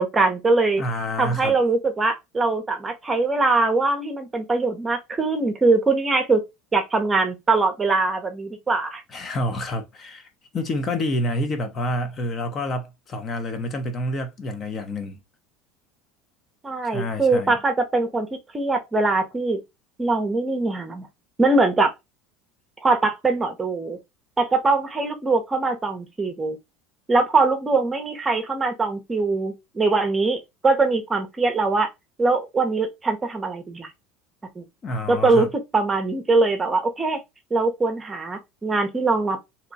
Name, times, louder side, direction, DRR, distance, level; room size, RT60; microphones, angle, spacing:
voice 1, 0.0-0.8 1.2-6.4 6.7-9.0 16.6-19.6 20.0-21.1 21.4-21.9 22.8-24.0 24.4-26.6 27.1-31.9 32.2-33.9 34.6-34.7 35.1-35.5 35.7-37.2 37.5-39.4, right 3 dB, 20° right, 0.7 m, -22 dB
voice 2, 0.8-1.5 9.1-15.2 16.8-17.6 34.8-35.5, left 1 dB, 35° left, 0.7 m, -28 dB
2.8 x 2.2 x 4.0 m
supercardioid pair, 105°, 0 cm